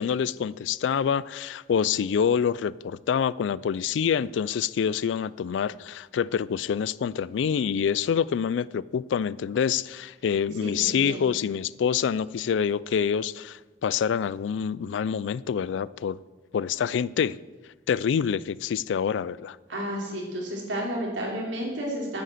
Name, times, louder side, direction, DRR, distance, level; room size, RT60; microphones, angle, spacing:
voice 1, 0.0-16.2 16.5-17.4 17.9-19.6, left 7 dB, 80° left, 0.3 m, -26 dB
voice 2, 10.6-11.2 19.7-22.2, equal, 85° right, 3.0 m, -31 dB
9.1 x 6.7 x 7.7 m
head